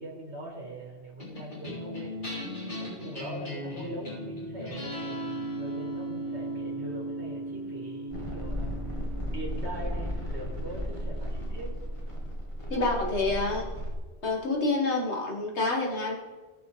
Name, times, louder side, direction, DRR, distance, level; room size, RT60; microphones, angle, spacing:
voice 1, 0.0-8.7 9.3-11.7, right 1 dB, 85° right, -3 dB, 2.1 m, -42 dB
sound 1, 1.2-11.8, right 1 dB, 50° left, 3.7 m, -38 dB
sound 2, 8.1-13.9, equal, 30° left, 1.7 m, -34 dB
voice 2, 12.7-13.7 14.2-16.1, left 2 dB, 85° left, -1 dB, 2.1 m, -27 dB
17.5 x 6.1 x 3.4 m, 1.3 s
omnidirectional pair, 1.1 m